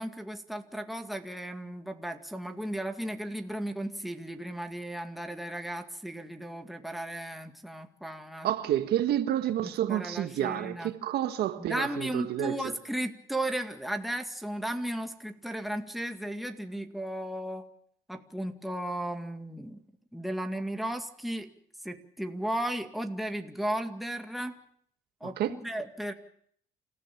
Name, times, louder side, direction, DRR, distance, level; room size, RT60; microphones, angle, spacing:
voice 1, 0.0-8.5 9.6-10.9 11.7-17.7 18.1-19.8 20.1-21.5 21.8-24.6 25.2-26.1, right 1 dB, ahead, 2.1 m, -35 dB
voice 2, 8.4-12.6 25.4-25.5, right 12 dB, 75° right, 1.6 m, -29 dB
28.5 x 15.5 x 7.4 m
cardioid pair, 110°, 17 cm